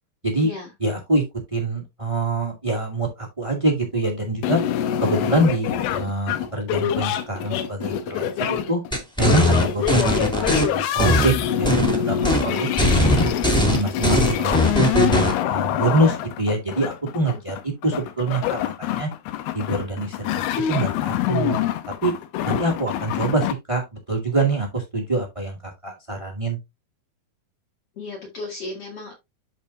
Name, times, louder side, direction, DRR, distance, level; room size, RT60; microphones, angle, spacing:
voice 1, 0.8-1.2 1.5-4.6 5.0-8.8 9.2-12.1 12.4-13.3 13.7-14.6 14.9-19.1 19.5-20.4 20.7-21.6 22.0-22.1 22.4-26.6, right 2 dB, 20° right, 0.8 m, -25 dB
sound 1, 4.4-23.5, left 11 dB, 85° left, 2.8 m, -26 dB
sound 2, 8.9-10.6 11.0-12.0 12.2-12.4 12.8-15.3, left 1 dB, ahead, 1.2 m, -19 dB
voice 2, 28.0-29.1, left 2 dB, 45° left, 2.3 m, -34 dB
12.5 x 4.3 x 2.7 m
omnidirectional pair, 4.4 m